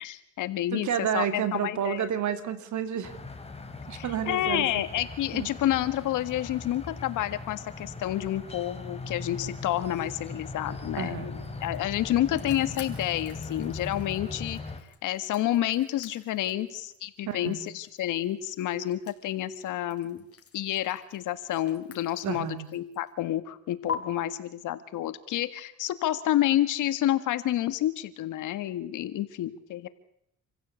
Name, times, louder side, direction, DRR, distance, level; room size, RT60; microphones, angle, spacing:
voice 1, 0.0-2.1 3.9-14.6 15.0-20.2 20.5-29.9, left 13 dB, 85° left, 13 dB, 1.7 m, -29 dB
voice 2, 0.7-3.1 3.9-4.7 5.3-5.5 11.0-11.3 17.2-17.6 22.2-22.7, right 9 dB, 70° right, 10 dB, 2.8 m, -30 dB
sound 1, 3.0-14.8, left 3 dB, 20° left, 3.5 m, -39 dB
sound 2, 11.3-23.2 23.9-24.0, left 6 dB, 50° left, 4.4 m, -46 dB
27.5 x 15.5 x 8.3 m, 0.77 s
cardioid pair, 90°, 30 cm